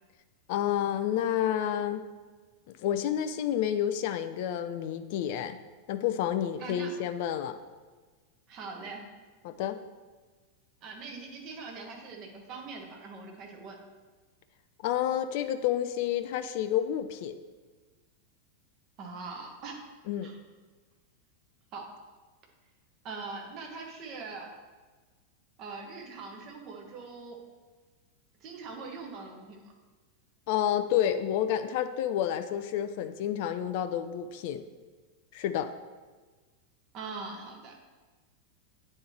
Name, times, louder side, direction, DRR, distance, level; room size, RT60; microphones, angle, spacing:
voice 1, 0.5-2.0 2.7-5.6 5.9-7.6 9.4-9.8 14.8-17.4 20.1-20.3 30.5-34.6 35.3-35.7, left 10 dB, 50° left, 10 dB, 0.3 m, -29 dB
voice 2, 6.6-6.9 8.5-9.0 10.8-13.8 19.0-19.9 20.2-20.4 21.7-21.9 23.0-24.5 25.6-27.4 28.4-29.6 36.9-37.8, right 4 dB, 35° right, 1 dB, 1.3 m, -42 dB
8.5 x 4.3 x 3.3 m, 1.3 s
figure-of-eight pair, 90°, 0 cm